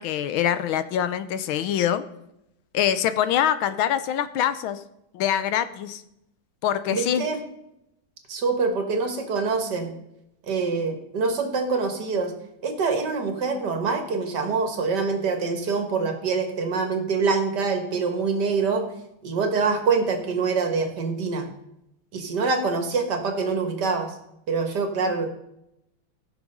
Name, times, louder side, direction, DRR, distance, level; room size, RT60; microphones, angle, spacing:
voice 1, 0.0-2.0 2.7-4.8 5.1-6.0 6.6-7.3, left 10 dB, 85° left, 12 dB, 1.5 m, -24 dB
voice 2, 6.9-7.4 8.3-9.9 10.5-12.3 12.6-18.8 19.2-21.5 22.1-24.1 24.5-25.3, right 4 dB, 60° right, 5 dB, 1.9 m, -25 dB
15.5 x 6.1 x 5.4 m, 0.83 s
omnidirectional pair, 2.2 m